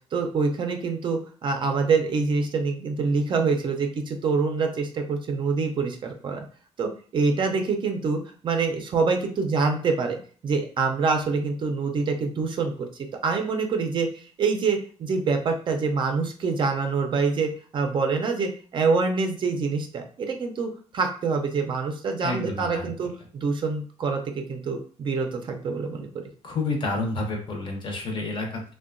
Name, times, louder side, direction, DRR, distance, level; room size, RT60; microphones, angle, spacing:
voice 1, 0.1-6.4 6.8-10.2 10.4-12.9 13.2-26.1, right 4 dB, 45° right, 4 dB, 0.4 m, -26 dB
voice 2, 22.2-22.9 26.4-28.6, left 2 dB, 45° left, 2 dB, 0.6 m, -29 dB
2.7 x 2.1 x 2.5 m, 0.42 s
cardioid pair, 140°, 12 cm